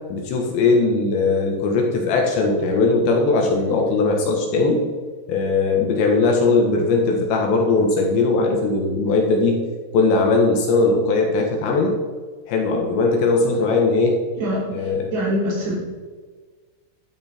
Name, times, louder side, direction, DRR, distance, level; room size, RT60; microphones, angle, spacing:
voice 1, 0.1-4.9 5.3-9.7 9.9-12.0 12.5-14.2 14.7-15.1, left 3 dB, 65° left, 1 dB, 3.4 m, -19 dB
voice 2, 14.4-15.7, equal, 50° right, -3 dB, 4.6 m, -25 dB
12.5 x 11.5 x 4.5 m, 1.5 s
omnidirectional pair, 5.9 m